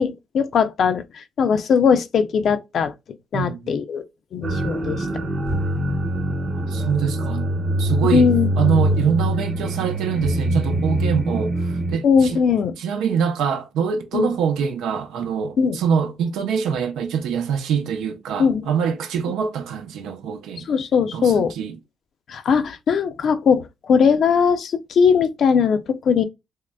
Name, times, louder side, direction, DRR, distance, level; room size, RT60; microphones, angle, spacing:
voice 1, 0.0-2.9 3.3-4.0 4.3-5.1 8.1-8.5 12.0-12.8 14.1-14.3 15.6-15.8 18.4-18.6 20.7-21.5 22.3-26.2, left 6 dB, 60° left, 0.5 m, -19 dB
voice 2, 3.3-3.8 6.6-7.5 7.8-8.3 8.6-12.4 12.8-20.6 21.1-21.7, right 7 dB, 85° right, 0.6 m, -24 dB
sound 1, 4.4-12.0, right 1 dB, 45° right, 0.9 m, -23 dB
3.6 x 3.1 x 2.2 m
cardioid pair, 90°, 0 cm